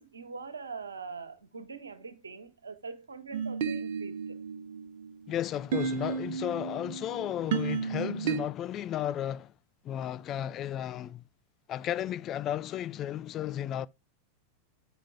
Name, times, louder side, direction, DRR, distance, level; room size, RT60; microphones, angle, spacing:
voice 1, 0.0-4.4, right 4 dB, 75° right, 1.5 m, -43 dB
sound 1, 3.3-8.4, right 6 dB, 50° right, 1.1 m, -33 dB
voice 2, 5.3-9.5 9.8-11.2 11.7-13.9, left 11 dB, 30° left, 0.4 m, -34 dB
8.8 x 5.1 x 3.7 m
figure-of-eight pair, 90°, 0 cm